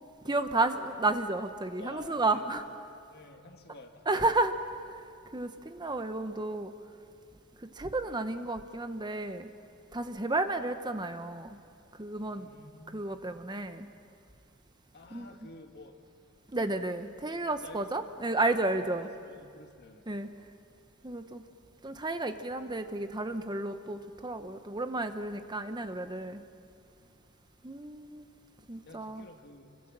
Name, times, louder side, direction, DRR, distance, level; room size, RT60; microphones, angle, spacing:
voice 1, 0.2-2.6 4.1-4.5 4.8-5.0 5.3-6.7 7.6-9.5 9.9-11.6 12.0-12.5 12.9-13.9 15.1-15.3 16.5-19.1 20.1-20.3 21.0-21.4 21.8-26.4 27.6-28.2 28.7-29.3, right 2 dB, 20° right, 8 dB, 0.9 m, -32 dB
voice 2, 1.6-2.5 3.1-4.4 12.2-13.1 14.9-15.9 17.5-18.3 18.8-20.0 27.0-27.2 28.9-29.7, left 2 dB, 50° left, 4 dB, 2.1 m, -51 dB
28.5 x 24.5 x 7.5 m, 2.4 s
head